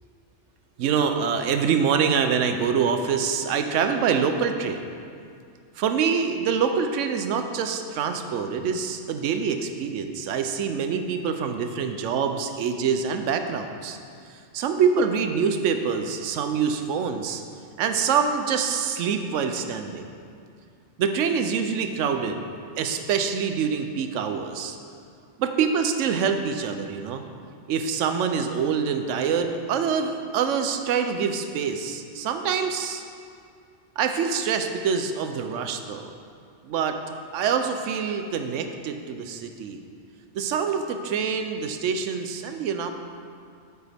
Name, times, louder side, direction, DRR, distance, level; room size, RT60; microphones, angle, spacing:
voice 1, 0.8-4.9 5.8-14.0 14.3-17.4 17.8-20.1 21.0-22.4 22.8-24.8 25.4-27.2 27.7-33.0 34.0-36.1 36.6-37.0 37.3-39.8 40.3-42.9, right 6 dB, 80° right, 7 dB, 0.9 m, -25 dB
9.0 x 6.9 x 3.4 m, 2.4 s
omnidirectional pair, 1.3 m